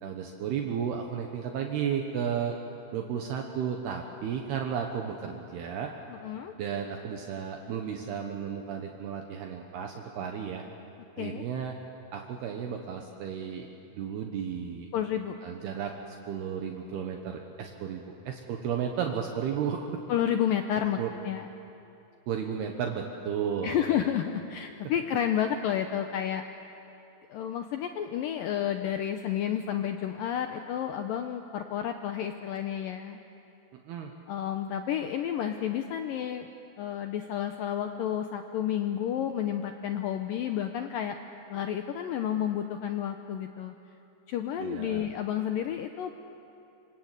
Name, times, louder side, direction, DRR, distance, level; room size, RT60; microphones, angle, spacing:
voice 1, 0.0-2.6 2.9-5.9 6.6-10.6 11.2-11.8 12.1-14.9 15.4-20.0 21.0-21.1 22.3-23.8 33.7-34.1 44.6-45.1, right 7 dB, 70° right, 2 dB, 3.2 m, -33 dB
voice 2, 6.2-6.5 11.2-11.4 14.9-15.4 20.1-21.0 21.3-21.5 23.6-26.4 27.3-33.2 34.3-36.5 36.8-41.2 41.5-43.7 44.3-46.2, left 10 dB, 80° left, 6 dB, 2.0 m, -30 dB
27.0 x 26.5 x 8.3 m, 2.8 s
omnidirectional pair, 5.1 m